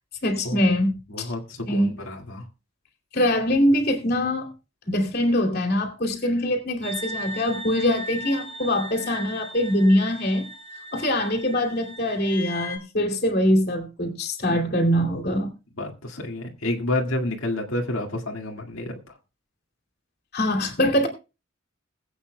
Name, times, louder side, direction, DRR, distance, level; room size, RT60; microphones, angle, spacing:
voice 1, 0.2-1.3 1.7-2.0 3.1-4.5 4.9-10.5 10.9-15.5 20.3-21.1, left 1 dB, 50° left, 2.6 m, -23 dB
voice 2, 1.1-2.4 14.5-14.7 15.8-19.2, left 1 dB, 85° left, 1.9 m, -29 dB
sound 1, 6.8-12.8, equal, 20° left, 3.1 m, -37 dB
21.0 x 8.5 x 2.2 m
head